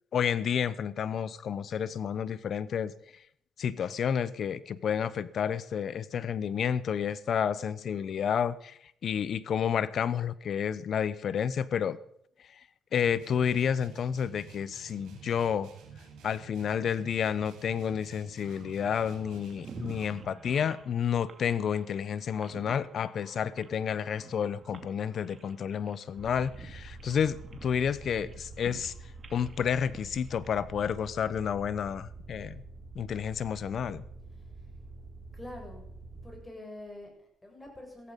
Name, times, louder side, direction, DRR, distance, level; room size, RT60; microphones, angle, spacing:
voice 1, 0.1-2.9 3.6-12.0 12.9-15.7 16.2-28.9 29.3-32.6 32.9-34.0, left 8 dB, 60° left, 18 dB, 0.9 m, -30 dB
sound 1, 12.9-20.5, right 6 dB, 85° right, 5.4 m, -51 dB
sound 2, 18.4-30.8, right 5 dB, 40° right, 2.4 m, -51 dB
sound 3, 26.2-36.4, right 3 dB, 20° right, 2.8 m, -47 dB
voice 2, 35.3-35.9 36.2-38.1, left 1 dB, 15° left, 1 dB, 7.2 m, -46 dB
16.0 x 14.5 x 5.4 m, 0.70 s
cardioid pair, 90°, 0 cm